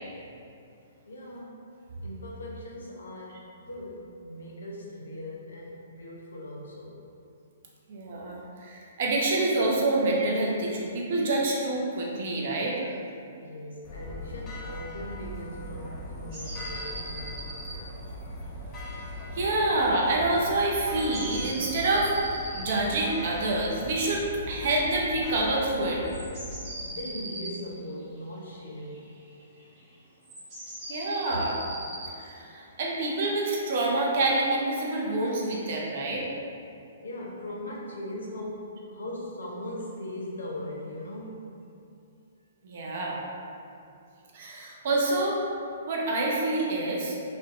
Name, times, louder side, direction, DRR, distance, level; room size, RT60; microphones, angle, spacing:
voice 1, 1.1-1.6 2.0-7.0 13.4-17.5 26.8-29.1 37.0-41.5, left 1 dB, 75° left, -3 dB, 0.5 m, -39 dB
voice 2, 7.9-12.8 19.3-22.3 22.6-26.0 30.9-31.6 32.2-36.3 42.6-43.2 44.3-45.4 45.9-47.1, right 2 dB, 55° right, -2 dB, 0.5 m, -27 dB
sound 1, 13.8-26.5, left 1 dB, 25° left, 0.4 m, -40 dB
sound 2, 16.3-17.8 18.2-18.3 19.7-19.8 20.9-22.8 26.0-27.6 28.8-29.8 30.2-32.1, right 1 dB, 35° right, 1.2 m, -40 dB
2.6 x 2.1 x 2.4 m, 2.6 s
hypercardioid pair, 125°, 0 cm